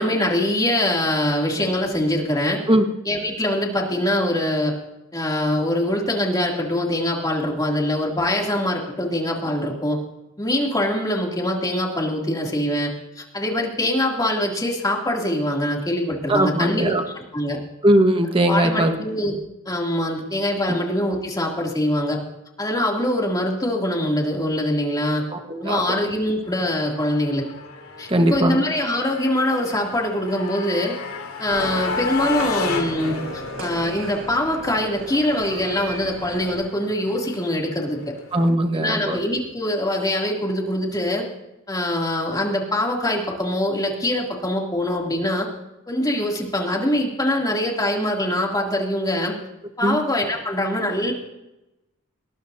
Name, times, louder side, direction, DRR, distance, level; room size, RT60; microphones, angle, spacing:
voice 1, 0.0-2.6 3.0-4.7 5.1-10.0 10.4-16.9 17.3-17.6 18.5-19.4 19.6-22.2 22.6-25.2 25.6-27.4 28.0-30.9 31.4-38.0 38.7-41.2 41.7-45.5 45.9-49.3 49.8-51.1, left 1 dB, 20° left, -1 dB, 2.9 m, -23 dB
voice 2, 16.3-17.0 17.8-18.9 20.7-20.8 25.3-26.0 28.1-28.6 38.3-39.2 49.8-50.0, right 1 dB, 25° right, 4 dB, 1.4 m, -19 dB
Motorcycle, 26.4-38.5, left 4 dB, 85° left, 2.8 m, -34 dB
sound 1, 31.5-36.6, right 1 dB, 70° right, 7.2 m, -35 dB
22.5 x 19.5 x 2.8 m, 0.97 s
head